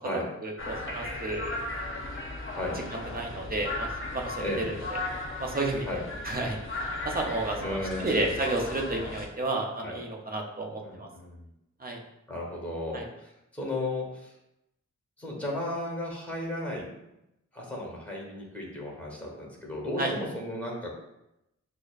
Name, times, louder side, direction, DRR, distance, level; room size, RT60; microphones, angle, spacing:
voice 1, 0.4-2.0 2.9-5.0 5.4-6.6 7.0-11.1 11.8-12.0 12.9-13.0 20.0-20.1, right 2 dB, 30° right, 1 dB, 0.6 m, -32 dB
sound 1, 0.6-9.3, left 2 dB, 45° left, 0.6 m, -36 dB
voice 2, 7.6-8.3 9.8-10.0 10.8-11.5 12.3-14.3 15.2-16.9 17.5-21.0, left 1 dB, 5° left, -2 dB, 1.1 m, -34 dB
6.1 x 2.1 x 2.4 m, 0.87 s
wide cardioid pair, 95°, 30 cm